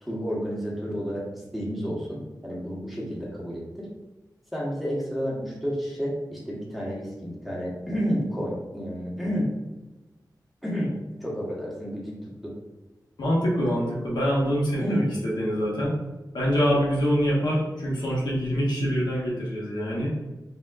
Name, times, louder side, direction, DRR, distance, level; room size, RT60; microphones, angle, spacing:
voice 1, 0.0-3.9 4.5-9.5 10.6-10.9 11.2-12.2 12.4-12.5 14.8-15.1, equal, ahead, -5 dB, 1.1 m, -30 dB
voice 2, 13.2-15.9 16.3-20.1, equal, 80° left, -5 dB, 1.2 m, -25 dB
5.2 x 2.8 x 2.4 m, 1.1 s
wide cardioid pair, 115°, 7 cm